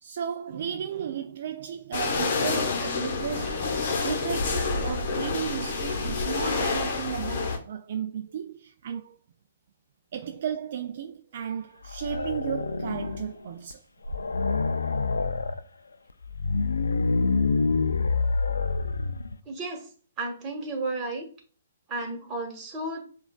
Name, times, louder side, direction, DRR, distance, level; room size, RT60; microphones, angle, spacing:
voice 1, 0.0-3.7 4.0-9.2 10.1-13.8, right 8 dB, 55° right, 0.3 m, -34 dB
sound 1, 1.9-7.6, left 4 dB, 50° left, 0.9 m, -28 dB
sound 2, 11.8-13.4 13.7-13.8 14.0-15.6 16.2-19.4, left 4 dB, 85° left, 0.3 m, -27 dB
voice 2, 19.5-19.9 20.2-21.3 21.9-23.0, right 2 dB, 25° right, 1.3 m, -33 dB
6.9 x 2.3 x 2.2 m
figure-of-eight pair, 125°, 0 cm